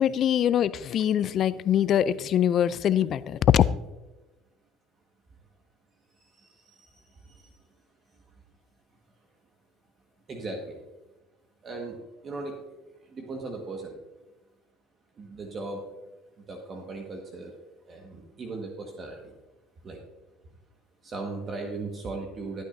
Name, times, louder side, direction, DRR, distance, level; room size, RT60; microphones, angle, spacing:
voice 1, 0.0-3.6, left 10 dB, 50° left, 17 dB, 0.4 m, -23 dB
voice 2, 6.4-7.5 10.3-10.8 11.6-12.0 12.2-12.6 13.1-14.0 15.2-15.8 16.5-17.5 17.9-19.2 19.8-20.0 21.0-22.6, right 3 dB, 40° right, 2 dB, 1.5 m, -37 dB
14.0 x 9.0 x 2.6 m, 1.1 s
supercardioid pair, 85°, 0 cm